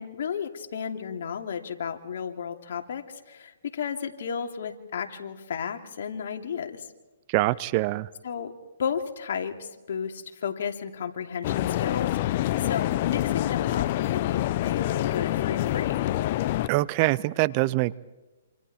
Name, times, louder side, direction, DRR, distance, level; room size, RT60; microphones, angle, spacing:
voice 1, 0.0-6.9 8.2-8.5 8.8-16.1, left 7 dB, 65° left, 4 dB, 2.8 m, -33 dB
voice 2, 7.3-8.1 16.7-17.9, right 19 dB, 35° right, 20 dB, 0.6 m, -24 dB
sound 1, 11.4-16.7, left 14 dB, 45° left, 0.7 m, -26 dB
28.0 x 27.5 x 4.4 m, 1.1 s
hypercardioid pair, 145°, 0 cm